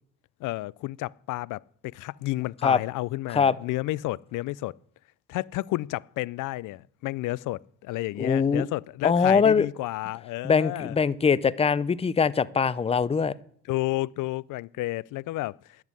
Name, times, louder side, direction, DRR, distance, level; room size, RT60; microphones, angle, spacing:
voice 1, 0.4-4.8 5.3-11.0 13.7-15.6, left 18 dB, 70° left, 0.5 m, -31 dB
voice 2, 8.2-8.6 9.0-9.7 10.4-13.3, left 6 dB, 20° left, 0.5 m, -22 dB
11.0 x 7.3 x 9.6 m
cardioid pair, 100°, 32 cm